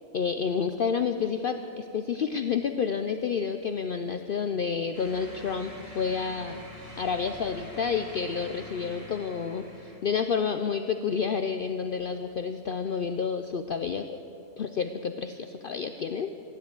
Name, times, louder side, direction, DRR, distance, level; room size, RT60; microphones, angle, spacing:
voice 1, 0.1-6.6 7.0-14.2 14.6-16.5, left 6 dB, 55° left, 8 dB, 0.7 m, -29 dB
sound 1, 4.9-10.0, left 1 dB, 50° right, 3.1 m, -45 dB
15.0 x 10.5 x 8.1 m, 2.8 s
omnidirectional pair, 1.3 m